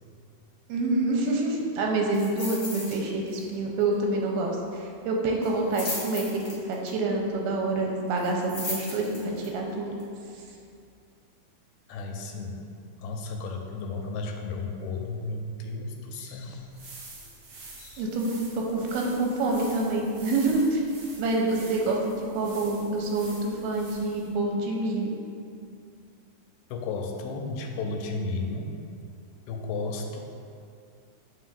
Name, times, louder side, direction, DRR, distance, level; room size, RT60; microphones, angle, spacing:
voice 1, 0.7-6.4 6.7-10.0 18.0-20.8 21.2-25.2, right 2 dB, 90° right, 0 dB, 2.6 m, -27 dB
sound 1, 2.1-3.0 3.3-3.5 3.8-3.9 5.4-6.9 8.2-9.5 10.0-10.1, left 2 dB, 65° left, 1.0 m, -36 dB
voice 2, 11.9-12.6 13.0-16.9 17.8-18.1 26.7-28.8 29.5-30.2, left 3 dB, 85° left, 2 dB, 2.3 m, -33 dB
sound 2, 16.6-24.3, right 3 dB, 60° right, 2.0 m, -47 dB
10.5 x 3.6 x 2.5 m, 2.4 s
omnidirectional pair, 4.4 m